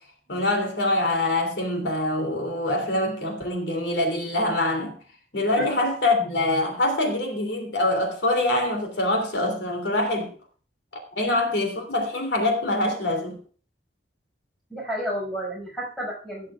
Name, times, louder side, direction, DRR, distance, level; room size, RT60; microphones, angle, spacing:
voice 1, 0.3-5.0 5.3-10.3 11.1-13.4, left 1 dB, 75° left, 2.9 m, -24 dB
voice 2, 14.7-16.5, equal, ahead, 5.8 m, -31 dB
16.0 x 10.5 x 2.4 m
head